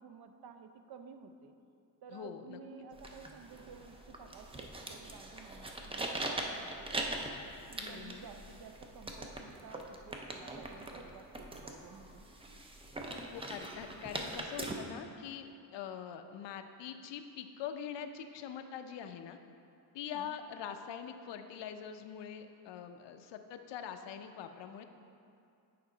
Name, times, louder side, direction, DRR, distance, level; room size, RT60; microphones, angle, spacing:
voice 1, 0.0-1.5 2.0-7.2 7.7-12.3 20.1-20.4, right 6 dB, 60° right, 7 dB, 0.6 m, -53 dB
voice 2, 2.1-2.6 7.8-8.3 13.3-19.4 19.9-24.8, left 8 dB, 85° left, 8 dB, 0.6 m, -44 dB
sound 1, 2.9-14.7, right 2 dB, 15° right, 0.3 m, -42 dB
8.6 x 5.1 x 3.9 m, 2.5 s
wide cardioid pair, 170°, 42 cm